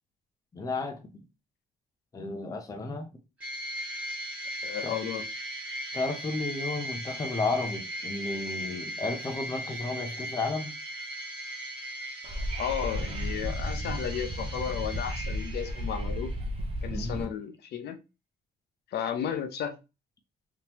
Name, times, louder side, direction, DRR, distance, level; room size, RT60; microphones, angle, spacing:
voice 1, 0.5-1.1 2.1-3.1 4.8-4.9 5.9-10.7 16.9-17.3, left 3 dB, 20° left, 0.6 m, -33 dB
sound 1, 3.4-16.2, equal, 10° right, 1.6 m, -38 dB
voice 2, 4.6-5.3 12.6-16.3 16.8-18.0 18.9-19.7, left 9 dB, 70° left, 0.6 m, -33 dB
Wind / Subway metro underground, 12.2-17.2, equal, 35° right, 0.7 m, -33 dB
3.5 x 2.9 x 2.9 m
cardioid pair, 150°, 18 cm